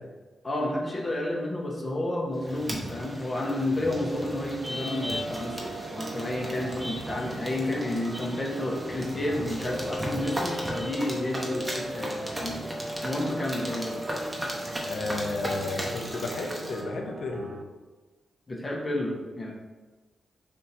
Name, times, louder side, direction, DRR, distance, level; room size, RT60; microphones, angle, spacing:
voice 1, 0.4-12.7 13.0-14.0 18.5-19.5, left 1 dB, 30° left, -1 dB, 0.9 m, -31 dB
sound 1, 2.4-16.8, equal, 20° right, 1.0 m, -37 dB
sound 2, 3.7-8.1 9.5-15.0, equal, 65° right, 1.3 m, -39 dB
sound 3, 4.2-17.6, right 3 dB, 40° right, 0.4 m, -42 dB
voice 2, 14.8-17.5, left 2 dB, 70° left, 2 dB, 0.6 m, -32 dB
3.5 x 2.6 x 4.3 m, 1.3 s
supercardioid pair, 40°, 0 cm